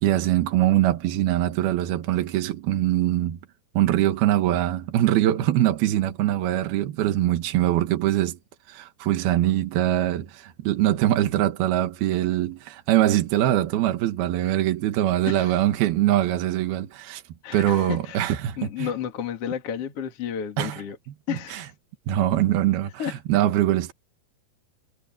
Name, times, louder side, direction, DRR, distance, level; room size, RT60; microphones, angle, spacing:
voice 1, 0.0-3.4 3.7-8.4 8.7-17.2 17.5-18.9 20.6-20.8 21.3-21.6 22.1-23.9, right 13 dB, 80° right, 3.3 m, -23 dB
voice 2, 15.3-15.6 17.4-21.0 21.3-21.7 23.0-23.2, left 9 dB, 45° left, 2.8 m, -32 dB
omnidirectional pair, 4.4 m